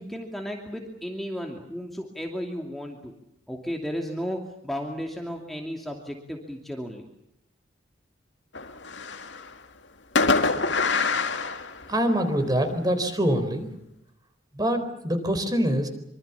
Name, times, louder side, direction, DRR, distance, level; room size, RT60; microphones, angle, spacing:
voice 1, 0.0-3.1 3.5-7.1, equal, ahead, 1 dB, 2.7 m, -34 dB
Fireworks, 8.5-9.5 10.2-12.4, left 4 dB, 75° left, 2.3 m, -25 dB
voice 2, 11.9-13.7 14.5-15.9, equal, 20° right, 8 dB, 4.2 m, -24 dB
26.0 x 25.0 x 7.0 m, 0.78 s
head